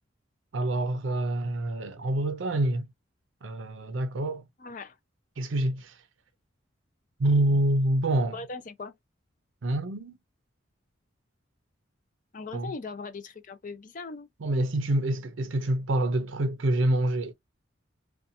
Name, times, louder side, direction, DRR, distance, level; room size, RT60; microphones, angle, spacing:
voice 1, 0.5-2.9 3.4-4.4 5.4-6.0 7.2-8.4 9.6-10.1 12.5-12.7 14.4-17.3, right 1 dB, 70° right, 0.5 m, -26 dB
voice 2, 4.6-5.0 8.3-8.9 12.3-14.3, left 3 dB, 40° left, 0.5 m, -39 dB
2.7 x 2.2 x 2.5 m
head